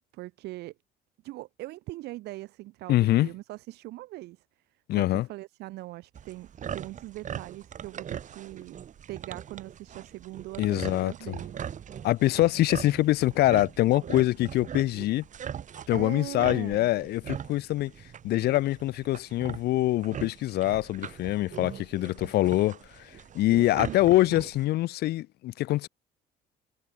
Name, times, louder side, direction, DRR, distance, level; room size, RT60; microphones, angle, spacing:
voice 1, 0.1-0.7 1.2-4.4 5.0-8.8 9.1-11.7 15.9-16.9 23.5-24.0 24.3-24.4, right 18 dB, 80° right, 0.8 m, -41 dB
voice 2, 2.9-3.3 4.9-5.3 10.6-11.4 12.0-15.2 15.9-17.9 18.2-23.1 23.3-25.9, left 16 dB, 70° left, 0.8 m, -24 dB
sound 1, 6.2-24.7, right 8 dB, 50° right, 4.3 m, -41 dB
cardioid pair, 110°, 17 cm